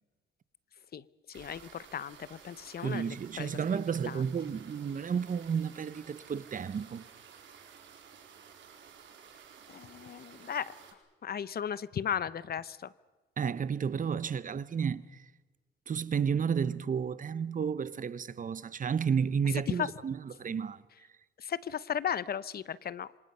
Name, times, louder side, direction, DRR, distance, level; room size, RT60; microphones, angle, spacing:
voice 1, 0.9-4.2 9.7-10.7 11.2-12.9 19.5-19.9 21.4-23.1, left 8 dB, 50° left, 0.9 m, -36 dB
sound 1, 1.3-10.9, right 7 dB, 70° right, 4.5 m, -54 dB
voice 2, 2.8-7.0 13.4-15.2 15.9-20.8, right 7 dB, 40° right, 1.1 m, -32 dB
27.0 x 26.0 x 5.7 m
cardioid pair, 90°, 20 cm